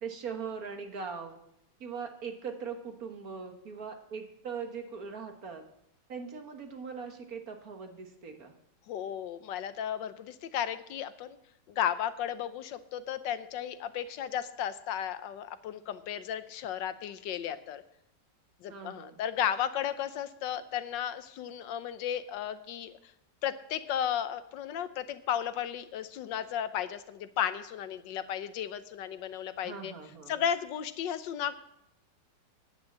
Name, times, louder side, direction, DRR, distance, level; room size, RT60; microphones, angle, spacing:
voice 1, 0.0-1.4 1.8-5.7 6.1-8.6 18.7-19.2 29.6-30.4, right 6 dB, 55° right, 5 dB, 1.7 m, -40 dB
voice 2, 8.9-11.4 11.7-17.8 18.6-22.9 23.4-29.9 30.3-31.6, left 9 dB, 85° left, 12 dB, 1.5 m, -34 dB
10.0 x 8.9 x 7.3 m, 0.77 s
omnidirectional pair, 1.9 m